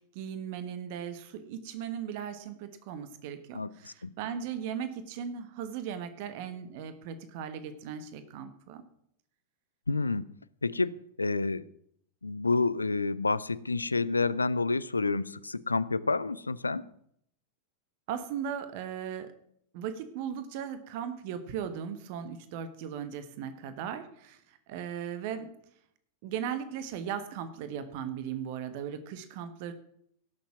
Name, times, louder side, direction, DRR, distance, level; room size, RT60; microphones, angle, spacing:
voice 1, 0.0-8.8 18.1-19.3 19.7-25.6 26.2-29.7, right 8 dB, 50° right, 11 dB, 1.3 m, -37 dB
voice 2, 3.5-4.1 9.9-10.2 10.6-11.6 12.2-16.8, left 3 dB, 80° left, 18 dB, 0.5 m, -29 dB
17.5 x 7.3 x 6.0 m, 0.69 s
figure-of-eight pair, 90°, 0 cm